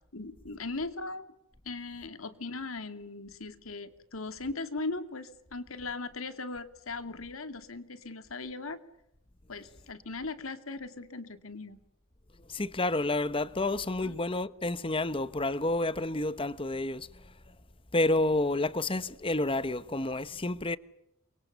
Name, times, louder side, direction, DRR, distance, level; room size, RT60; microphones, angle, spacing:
voice 1, 0.1-1.2 1.6-8.8 9.5-11.8 14.0-14.2, left 3 dB, 90° left, 2.5 m, -39 dB
voice 2, 12.4-17.3 17.9-20.8, left 2 dB, 25° left, 1.1 m, -30 dB
29.5 x 24.0 x 7.0 m
head